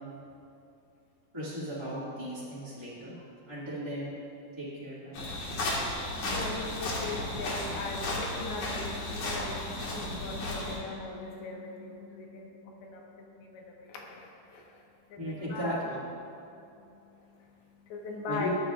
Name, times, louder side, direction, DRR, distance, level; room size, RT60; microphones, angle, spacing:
voice 1, 1.3-4.1 4.6-5.3 15.2-16.0 18.3-18.5, equal, 10° right, -12 dB, 1.5 m, -36 dB
sound 1, 5.1-10.8, left 2 dB, 55° left, 3.1 m, -34 dB
voice 2, 6.3-14.8 15.1-15.9 16.6-18.5, left 3 dB, 80° left, -1 dB, 3.5 m, -41 dB
21.0 x 9.5 x 2.6 m, 2.7 s
omnidirectional pair, 4.4 m